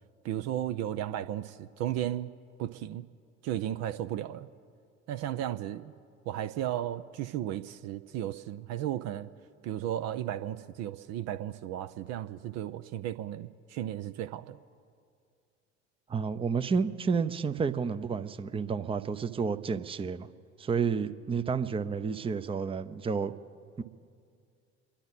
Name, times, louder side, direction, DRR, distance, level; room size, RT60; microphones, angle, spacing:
voice 1, 0.2-2.3 2.6-3.1 3.4-4.5 5.1-5.9 6.3-9.3 9.6-14.6, right 11 dB, 45° right, 10 dB, 0.7 m, -34 dB
voice 2, 16.1-20.3 20.6-23.4 23.8-23.9, right 5 dB, 15° right, 10 dB, 0.7 m, -30 dB
29.0 x 11.5 x 4.1 m, 2.3 s
figure-of-eight pair, 60°, 35 cm